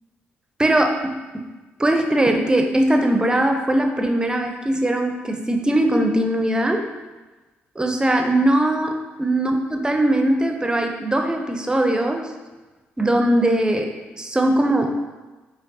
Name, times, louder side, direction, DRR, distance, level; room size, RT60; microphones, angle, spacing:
voice 1, 0.6-1.2 1.8-6.8 7.8-12.2 13.0-15.0, right 1 dB, 15° right, 4 dB, 0.5 m, -20 dB
4.4 x 2.3 x 2.6 m, 1.2 s
hypercardioid pair, 45°, 6 cm